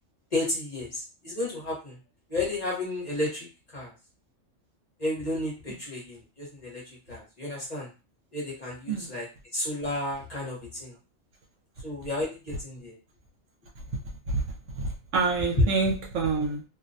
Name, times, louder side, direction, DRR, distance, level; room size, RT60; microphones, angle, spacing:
voice 1, 0.3-2.0 2.3-3.9 5.0-7.9 8.3-9.3 9.5-10.9 11.8-13.0, left 2 dB, 35° left, -4 dB, 1.0 m, -33 dB
voice 2, 14.7-16.6, right 4 dB, 75° right, 0 dB, 1.0 m, -27 dB
2.5 x 2.2 x 2.6 m, 0.30 s
omnidirectional pair, 1.3 m